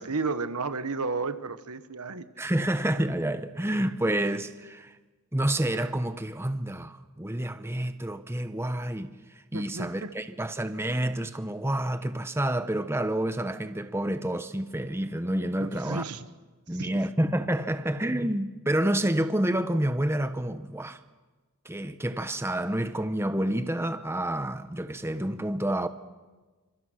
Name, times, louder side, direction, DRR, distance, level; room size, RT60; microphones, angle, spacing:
voice 1, 0.0-2.5 9.5-10.1 15.6-16.2 16.8-16.9, right 4 dB, 90° right, 1.2 m, -33 dB
voice 2, 2.4-4.9 5.3-9.1 9.5-16.0 16.7-21.0 21.6-25.9, right 1 dB, 10° right, 0.9 m, -29 dB
29.5 x 26.5 x 6.4 m
head